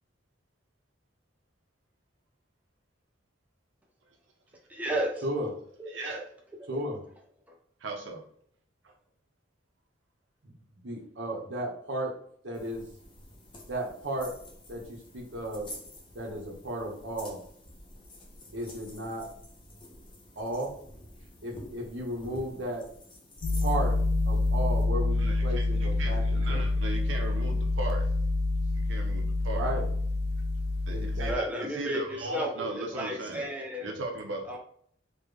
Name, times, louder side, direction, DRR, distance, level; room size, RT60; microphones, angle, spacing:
voice 1, 4.7-5.3 5.8-5.9 6.7-6.8 31.3-33.9 34.5-34.6, right 1 dB, 10° right, -1 dB, 0.5 m, -33 dB
voice 2, 5.9-6.2 6.7-7.0 10.4-10.5 10.8-12.1 12.4-12.8 13.7-14.3 14.7-15.7 16.1-17.4 18.5-19.2 20.4-20.7 21.4-22.8 23.6-24.0 24.2-26.6 29.5-29.9 30.9-31.7, right 1 dB, 70° right, -2 dB, 1.0 m, -34 dB
voice 3, 7.8-8.2 25.2-28.0 28.9-29.7 30.8-31.3 31.7-33.4 33.8-34.6, right 2 dB, 85° right, 2 dB, 0.6 m, -37 dB
sound 1, 12.5-24.8, left 1 dB, 25° left, 0.7 m, -49 dB
sound 2, 23.4-31.3, left 2 dB, 60° left, 0.4 m, -27 dB
3.4 x 2.2 x 3.5 m, 0.63 s
head